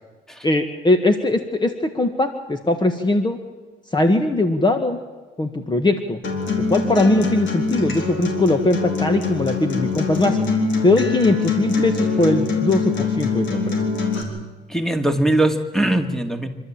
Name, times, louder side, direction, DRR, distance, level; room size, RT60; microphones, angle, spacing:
voice 1, 0.4-3.4 3.9-5.0 5.4-6.2 6.7-10.4 10.8-13.8, left 2 dB, 20° left, 7 dB, 1.6 m, -20 dB
Acoustic guitar, 6.2-14.2, left 4 dB, 70° left, 4.3 m, -23 dB
voice 2, 14.7-16.5, right 1 dB, ahead, 6 dB, 2.3 m, -21 dB
26.5 x 12.5 x 8.8 m, 1.3 s
cardioid pair, 90°, 20 cm